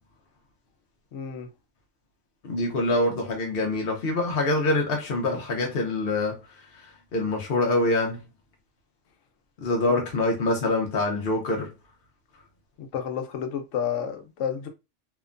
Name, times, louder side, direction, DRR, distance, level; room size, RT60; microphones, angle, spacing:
voice 1, 1.1-1.5 9.9-10.0 12.8-14.7, left 8 dB, 80° left, 1.0 m, -31 dB
voice 2, 2.4-6.4 6.7-6.9 7.1-8.2 9.6-11.7, left 2 dB, 60° left, 0.8 m, -25 dB
2.8 x 2.1 x 2.4 m
omnidirectional pair, 1.3 m